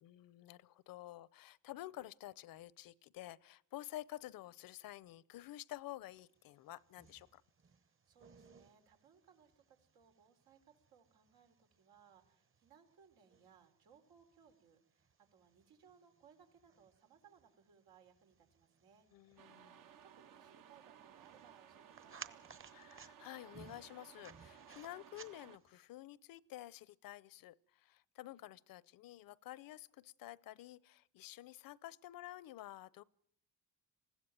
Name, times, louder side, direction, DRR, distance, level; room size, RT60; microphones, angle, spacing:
voice 1, 0.0-7.4 19.1-19.8 22.7-33.0, left 15 dB, 70° left, 22 dB, 0.7 m, -51 dB
sound 1, 6.4-25.8, right 6 dB, 35° right, 1.3 m, -61 dB
voice 2, 7.7-22.4, right 7 dB, 85° right, 4 dB, 3.9 m, -67 dB
sound 2, 19.4-25.6, right 9 dB, 65° right, 1.3 m, -59 dB
20.5 x 15.5 x 9.0 m, 0.66 s
cardioid pair, 105°, 36 cm